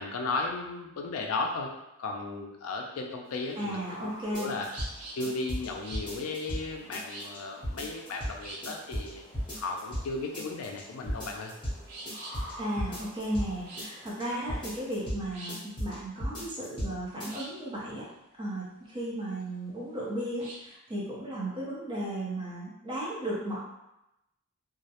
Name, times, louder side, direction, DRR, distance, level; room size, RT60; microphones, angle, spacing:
voice 1, 0.0-1.7 2.0-4.7 5.1-9.2 9.6-11.5, left 3 dB, 65° left, 2 dB, 0.4 m, -35 dB
sound 1, 3.2-15.0, equal, 40° left, 1.0 m, -52 dB
voice 2, 3.6-4.5 12.6-18.1 18.4-23.6, right 1 dB, 20° right, -6 dB, 0.6 m, -35 dB
sound 2, 4.0-20.7, right 2 dB, 75° right, 0.6 m, -48 dB
sound 3, 4.3-4.9 5.2-6.6 6.9-7.4 7.6-8.3 8.6-9.1 9.3-10.1 10.3-10.8 11.1-11.8 12.1-13.5 13.8-14.2 14.5-15.2 15.5-15.9 16.2-16.9 17.2-17.3, equal, 20° left, 0.8 m, -34 dB
2.3 x 2.1 x 2.8 m, 0.89 s
head